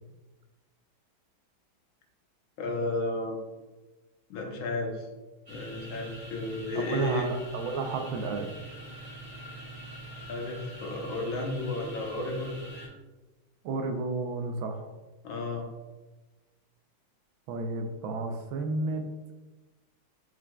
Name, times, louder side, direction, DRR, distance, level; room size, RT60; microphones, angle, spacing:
voice 1, 2.6-3.4 4.3-5.1 5.5-7.3 10.3-12.9 15.2-15.7, left 2 dB, 75° left, 1 dB, 1.6 m, -33 dB
sound 1, 5.5-12.9, right 1 dB, 20° right, 1.5 m, -43 dB
voice 2, 6.7-8.5 13.6-14.9 17.5-19.1, right 3 dB, 80° right, 6 dB, 1.4 m, -32 dB
4.8 x 4.5 x 2.2 m, 1.2 s
omnidirectional pair, 2.3 m